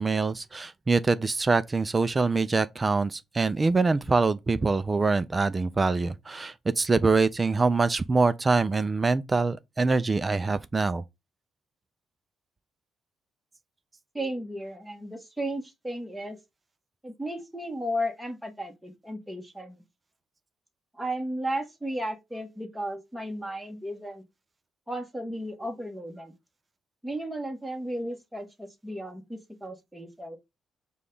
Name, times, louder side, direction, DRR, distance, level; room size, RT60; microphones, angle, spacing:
voice 1, 0.0-11.0, right 3 dB, 25° right, 0.3 m, -24 dB
voice 2, 14.1-16.4 17.0-19.8 21.0-24.2 24.9-26.3 27.0-30.4, equal, 5° right, 1.2 m, -34 dB
5.1 x 2.3 x 3.7 m
cardioid pair, 90°, 0 cm